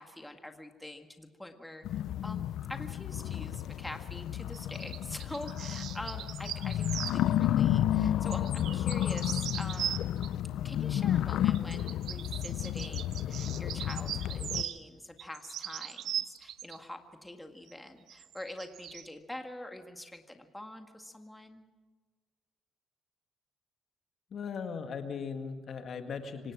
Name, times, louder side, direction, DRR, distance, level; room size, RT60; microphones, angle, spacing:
voice 1, 0.0-10.1 10.6-21.6, left 1 dB, 10° left, 5 dB, 1.9 m, -45 dB
sound 1, 1.8-14.6, left 11 dB, 80° left, 0.6 m, -31 dB
sound 2, 4.5-7.2 8.3-10.3 11.5-14.8 15.2-16.8 17.7-17.8 18.1-19.1, right 10 dB, 80° right, 0.7 m, -39 dB
voice 2, 24.3-26.5, left 6 dB, 60° left, 6 dB, 1.9 m, -38 dB
26.0 x 18.0 x 6.1 m, 1.3 s
cardioid pair, 90°, 0 cm